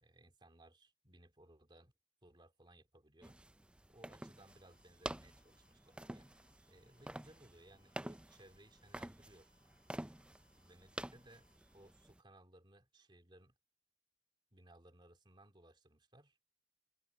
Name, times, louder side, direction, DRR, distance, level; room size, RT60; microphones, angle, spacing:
voice 1, 0.0-1.9 2.2-3.4 3.9-6.3 6.7-9.6 10.5-13.5 14.5-16.4, right 1 dB, 25° right, 2.6 m, -63 dB
sound 1, 3.2-12.2, right 1 dB, 5° right, 0.4 m, -49 dB
sound 2, 4.5-11.9, left 1 dB, 55° right, 3.0 m, -77 dB
open air
head